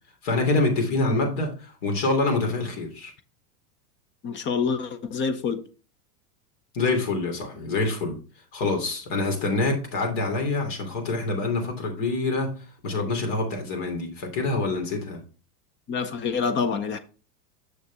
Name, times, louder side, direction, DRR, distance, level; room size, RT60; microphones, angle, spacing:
voice 1, 0.2-3.1 6.7-8.2 8.5-12.6 12.8-15.2, left 3 dB, 50° left, 3.0 m, -26 dB
voice 2, 4.2-5.6 15.9-17.0, left 5 dB, 25° left, 0.5 m, -26 dB
6.5 x 6.5 x 3.4 m
supercardioid pair, 125°, 50 cm